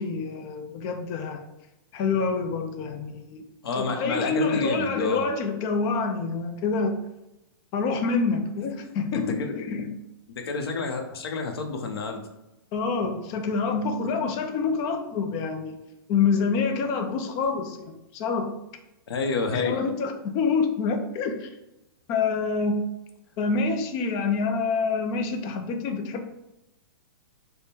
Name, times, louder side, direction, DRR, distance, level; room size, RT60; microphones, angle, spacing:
voice 1, 0.0-1.4 1.9-3.4 3.7-6.9 7.7-9.9 12.7-15.8 16.1-18.5 19.5-21.5 22.1-22.8 23.4-26.3, left 4 dB, 30° left, 5 dB, 0.4 m, -27 dB
voice 2, 3.6-5.3 9.1-9.5 10.3-12.3 19.1-19.7, left 4 dB, 85° left, 4 dB, 0.7 m, -29 dB
3.5 x 2.1 x 4.2 m, 0.93 s
hypercardioid pair, 160°, 13 cm